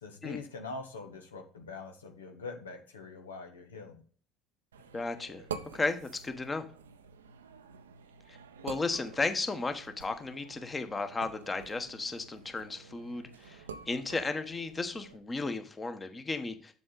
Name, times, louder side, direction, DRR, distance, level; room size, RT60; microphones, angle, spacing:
voice 1, 0.0-4.0, left 4 dB, 85° left, 4 dB, 1.1 m, -43 dB
sound 1, 4.7-15.2, right 6 dB, 85° right, 0.6 m, -48 dB
voice 2, 4.9-5.4 5.7-6.7 8.3-8.4 8.6-16.7, left 3 dB, 25° left, 8 dB, 1.3 m, -34 dB
7.6 x 6.3 x 4.0 m, 0.44 s
hypercardioid pair, 65°, 0 cm